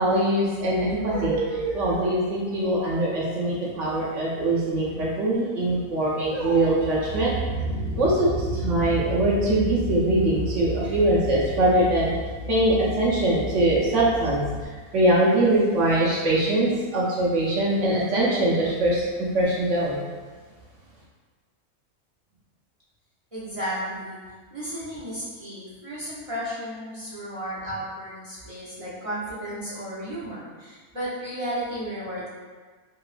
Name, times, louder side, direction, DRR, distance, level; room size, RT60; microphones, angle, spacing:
voice 1, 0.0-7.3 8.0-12.1 12.5-20.0, right 1 dB, 70° right, -6 dB, 1.0 m, -22 dB
sound 1, 6.4-14.6, equal, 80° left, 1.1 m, -32 dB
voice 2, 23.3-24.2 24.5-32.3, equal, 35° right, -10 dB, 0.6 m, -33 dB
3.0 x 2.9 x 2.4 m, 1.4 s
omnidirectional pair, 1.3 m